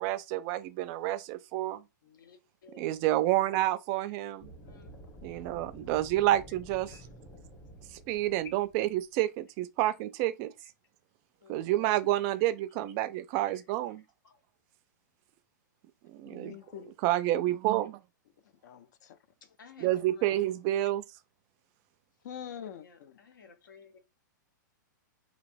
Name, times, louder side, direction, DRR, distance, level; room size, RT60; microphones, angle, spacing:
voice 1, 0.0-1.8 2.8-4.5 5.2-7.0 7.9-10.5 11.5-14.0 16.1-16.5 17.0-18.0 19.8-21.0, right 14 dB, 35° right, 0.3 m, -29 dB
voice 2, 2.0-3.0 4.6-5.0 6.9-7.0 11.4-11.7 14.2-14.4 16.2-16.5 19.6-20.5 22.8-24.0, left 5 dB, 80° left, 0.8 m, -56 dB
sound 1, 4.4-9.2, right 1 dB, 20° left, 1.1 m, -50 dB
voice 3, 16.3-16.9 18.6-19.2 22.2-23.2, left 8 dB, 60° left, 0.4 m, -44 dB
3.0 x 2.8 x 2.5 m
hypercardioid pair, 130°, 10 cm